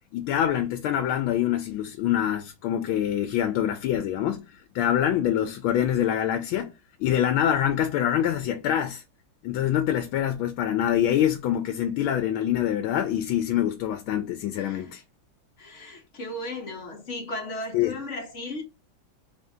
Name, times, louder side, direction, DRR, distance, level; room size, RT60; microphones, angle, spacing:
voice 1, 0.1-4.4 4.7-6.7 7.0-9.0 9.4-15.0 17.7-18.0, left 10 dB, 90° left, 1.4 m, -25 dB
voice 2, 14.5-14.9 15.6-18.6, left 1 dB, 45° left, 1.1 m, -36 dB
4.1 x 2.7 x 3.5 m
omnidirectional pair, 2.2 m